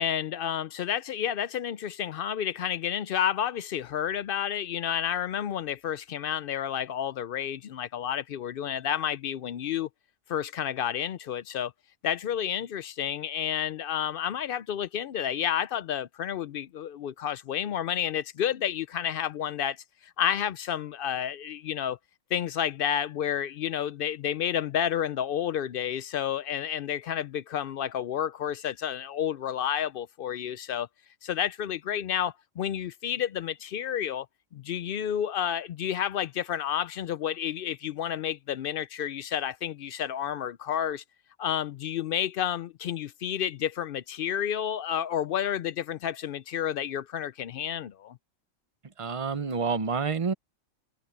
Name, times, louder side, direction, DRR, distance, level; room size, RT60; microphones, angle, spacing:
voice 1, 0.0-9.9 10.3-11.7 12.0-22.0 22.3-30.9 31.2-34.3 34.5-41.0 41.4-48.2, left 9 dB, 70° left, 0.5 m, -30 dB
voice 2, 49.0-50.3, right 5 dB, 25° right, 0.9 m, -28 dB
omnidirectional pair, 1.5 m